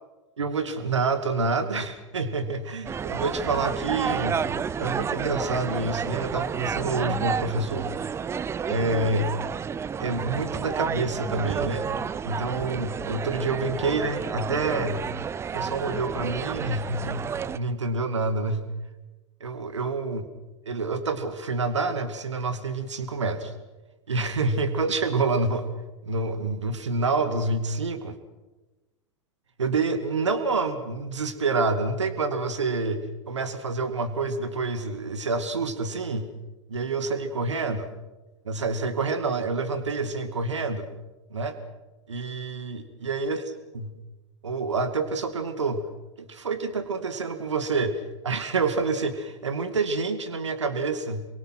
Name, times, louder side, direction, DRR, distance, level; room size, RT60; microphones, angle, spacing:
voice 1, 0.4-4.5 4.8-7.9 8.7-9.3 10.0-11.9 12.2-15.1 15.5-17.3 17.5-18.7 19.4-20.3 20.6-23.5 24.1-25.7 26.1-28.2 29.6-36.3 36.7-37.9 38.5-40.9 41.3-41.6 42.1-43.9 44.4-45.9 46.2-51.3, right 3 dB, 75° right, 9 dB, 2.3 m, -27 dB
sound 1, 2.9-17.6, right 7 dB, 15° right, 0.7 m, -31 dB
27.5 x 23.5 x 6.0 m, 1.1 s
figure-of-eight pair, 90°, 15 cm